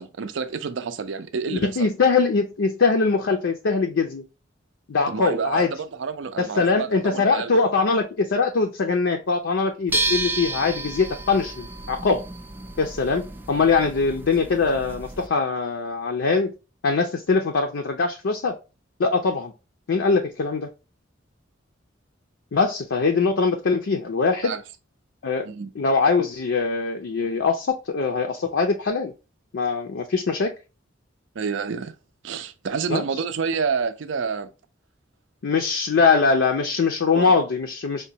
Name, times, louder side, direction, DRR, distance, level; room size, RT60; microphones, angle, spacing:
voice 1, 0.0-1.9 5.1-7.6 24.4-24.6 25.4-25.7 31.4-31.9 32.2-34.5 37.1-37.3, right 5 dB, 70° right, 0.5 m, -28 dB
voice 2, 1.5-4.2 4.9-5.7 6.4-12.2 12.8-16.5 16.8-18.6 19.0-19.5 19.9-20.7 22.5-24.5 25.2-25.5 25.8-29.1 29.5-30.5 32.9-33.0 35.4-38.0, left 4 dB, 70° left, 0.5 m, -22 dB
sound 1, 9.9-15.3, right 2 dB, 10° right, 0.3 m, -31 dB
5.0 x 2.2 x 2.7 m
head